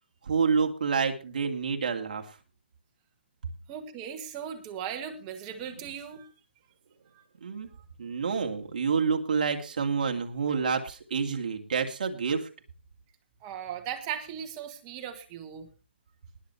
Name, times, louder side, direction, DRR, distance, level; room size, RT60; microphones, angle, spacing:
voice 1, 0.2-2.4 7.4-7.7 8.0-12.5, right 5 dB, 45° right, 4 dB, 2.5 m, -28 dB
voice 2, 3.7-6.3 7.1-7.2 13.4-15.7, right 8 dB, 15° right, 5 dB, 1.5 m, -38 dB
20.0 x 7.2 x 4.5 m, 0.32 s
hypercardioid pair, 175°, 6 cm